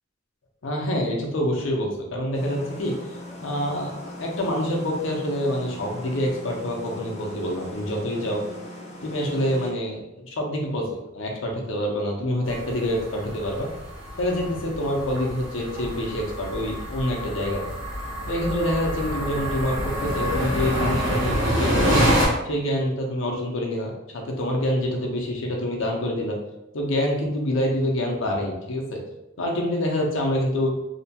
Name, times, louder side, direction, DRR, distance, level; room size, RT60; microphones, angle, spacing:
voice 1, 0.6-2.9 3.4-8.4 9.0-13.7 14.2-17.6 18.3-22.0 22.4-26.4 26.7-29.0 29.4-30.7, left 1 dB, 75° left, 0 dB, 0.6 m, -26 dB
sound 1, 2.3-9.7, left 1 dB, 35° left, 0.5 m, -40 dB
sound 2, 12.5-22.3, equal, 70° right, 0.9 m, -27 dB
2.8 x 2.2 x 2.8 m, 0.90 s
head